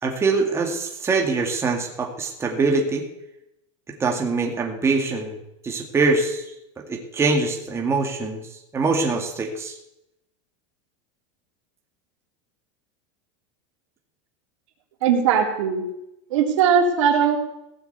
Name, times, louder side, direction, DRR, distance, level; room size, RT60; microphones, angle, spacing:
voice 1, 0.0-3.1 3.9-5.4 5.6-6.4 6.8-9.8, right 3 dB, 15° right, 1 dB, 2.2 m, -23 dB
voice 2, 15.0-15.8 16.3-17.4, right 7 dB, 75° right, 1 dB, 3.6 m, -19 dB
17.0 x 7.3 x 8.1 m, 0.84 s
supercardioid pair, 145°, 17 cm